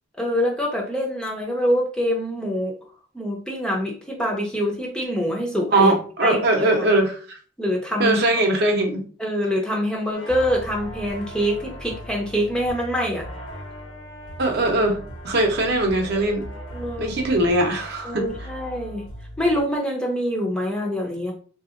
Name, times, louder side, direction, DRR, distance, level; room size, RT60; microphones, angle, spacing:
voice 1, 0.2-2.7 3.1-5.9 6.2-6.9 7.6-8.4 9.2-13.2 16.7-17.1 18.0-19.0 19.4-21.3, equal, 5° left, -2 dB, 0.5 m, -25 dB
voice 2, 5.7-7.4 8.0-9.0 14.4-16.5 17.0-18.3, right 2 dB, 50° right, 2 dB, 0.7 m, -21 dB
sound 1, 10.1-19.6, equal, 75° left, 1.1 m, -38 dB
3.5 x 2.8 x 2.4 m, 0.40 s
head